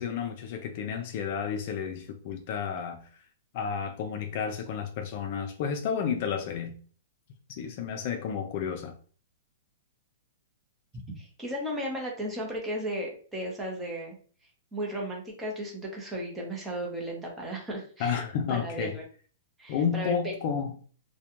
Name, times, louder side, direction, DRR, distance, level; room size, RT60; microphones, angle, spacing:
voice 1, 0.0-3.0 3.5-6.8 7.6-8.9 18.0-18.9 19.7-20.7, left 7 dB, 45° left, 0.4 m, -31 dB
voice 2, 11.2-14.1 14.7-18.2 18.5-19.0 19.6-20.1, equal, 10° right, 0.7 m, -35 dB
2.3 x 2.1 x 2.9 m
hypercardioid pair, 150°, 0 cm